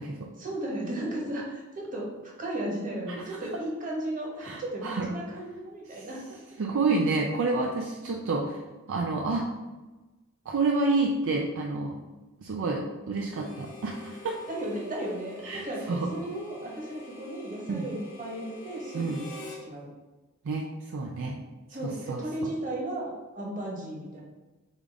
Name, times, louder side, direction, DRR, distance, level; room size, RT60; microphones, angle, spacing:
voice 1, 0.4-2.1 2.4-6.4 14.5-19.9 21.7-24.2, right 1 dB, 40° right, -2 dB, 1.2 m, -35 dB
voice 2, 4.4-5.1 5.9-6.1 6.6-8.6 8.9-9.5 10.5-12.0 12.4-14.4 15.4-16.1 17.7-17.8 18.9-19.3 20.4-21.4 21.8-22.5, right 3 dB, 60° right, 0 dB, 0.4 m, -29 dB
Harmonica, 13.3-19.6, left 2 dB, 40° left, 0.8 m, -46 dB
3.7 x 3.6 x 3.6 m, 1.1 s
head